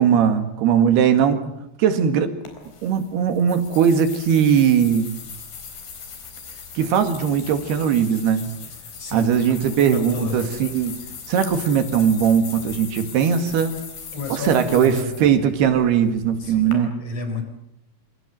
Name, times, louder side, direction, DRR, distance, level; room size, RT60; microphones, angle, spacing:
voice 1, 0.0-1.5 1.8-2.3 2.8-5.2 6.8-8.5 9.1-10.9 11.3-13.8 14.3-16.9, right 8 dB, 90° right, 8 dB, 4.0 m, -19 dB
sound 1, 2.5-16.7, left 6 dB, 75° left, 6.1 m, -39 dB
voice 2, 9.0-10.6 14.1-15.1 16.4-17.4, left 2 dB, 40° left, 6 dB, 5.0 m, -31 dB
27.0 x 23.5 x 7.6 m, 0.79 s
omnidirectional pair, 4.5 m